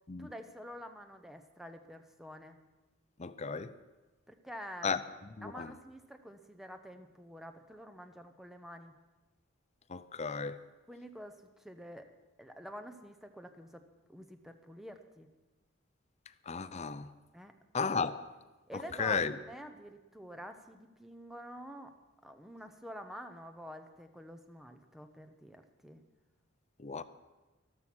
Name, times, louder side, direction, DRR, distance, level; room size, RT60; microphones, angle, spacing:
voice 1, 0.2-2.6 4.3-5.1 5.4-9.0 10.9-12.1 12.4-15.3 17.3-17.5 18.7-21.9 22.2-26.0, equal, ahead, 7 dB, 0.9 m, -48 dB
voice 2, 3.2-3.7 4.8-5.0 5.4-5.8 9.9-10.7 16.5-17.1 17.7-18.2 18.7-19.4 26.8-27.0, left 5 dB, 35° left, 13 dB, 0.6 m, -34 dB
13.0 x 13.0 x 6.2 m, 1.2 s
head